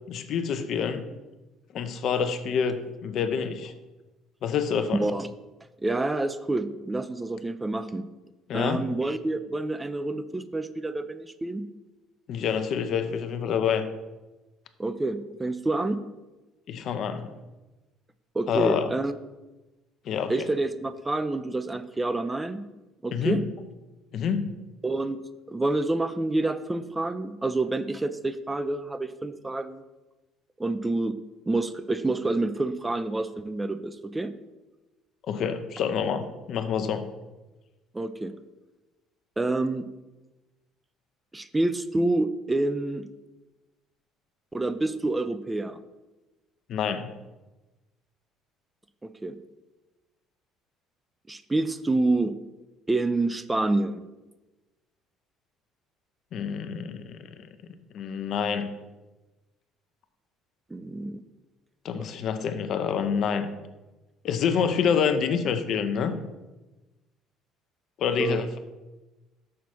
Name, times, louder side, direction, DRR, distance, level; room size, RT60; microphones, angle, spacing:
voice 1, 0.1-1.1 1.7-3.7 4.4-5.0 8.5-8.8 12.3-13.9 16.7-17.3 18.5-18.9 20.1-20.3 23.1-23.4 24.1-24.5 35.3-37.1 46.7-47.2 56.3-57.2 57.9-58.7 61.8-63.5 64.2-66.2 68.0-68.6, left 7 dB, 60° left, 9 dB, 0.7 m, -27 dB
voice 2, 4.9-5.3 5.8-8.1 8.5-11.7 14.8-16.0 18.3-19.2 20.3-22.7 23.0-23.4 24.8-29.8 30.6-31.2 31.5-34.3 37.9-38.3 39.4-39.9 41.3-43.1 44.5-45.8 49.0-49.4 51.3-52.3 52.9-54.0 60.7-61.2 68.2-68.4, right 2 dB, 15° right, 12 dB, 0.5 m, -28 dB
6.4 x 4.1 x 6.0 m, 1.1 s
hypercardioid pair, 60°, 0 cm